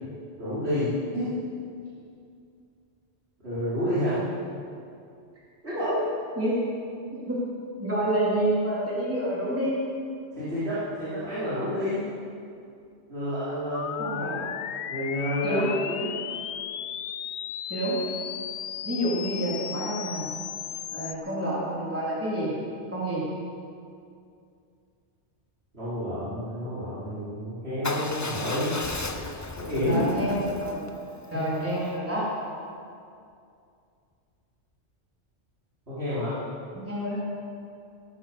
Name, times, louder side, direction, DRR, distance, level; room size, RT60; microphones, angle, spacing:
voice 1, 0.4-1.4 3.4-4.2 5.6-6.0 10.3-12.1 13.1-14.2 14.9-15.6 15.9-16.1 25.7-28.7 29.6-30.0 31.3-31.5 35.9-36.4, left 1 dB, 60° right, -14 dB, 5.1 m, -29 dB
voice 2, 6.4-6.7 7.1-7.4 7.8-9.8 14.0-14.5 15.4-15.7 17.7-18.0 18.8-20.3 20.9-22.5 22.9-23.3 29.8-30.8 31.3-32.3 36.7-37.3, right 1 dB, 10° right, -8 dB, 3.8 m, -28 dB
sound 1, 13.7-21.1, left 10 dB, 70° left, 0.9 m, -35 dB
Motorcycle / Engine starting / Idling, 27.8-31.9, left 2 dB, 20° left, 0.6 m, -36 dB
17.5 x 12.5 x 6.2 m, 2.4 s
omnidirectional pair, 1.2 m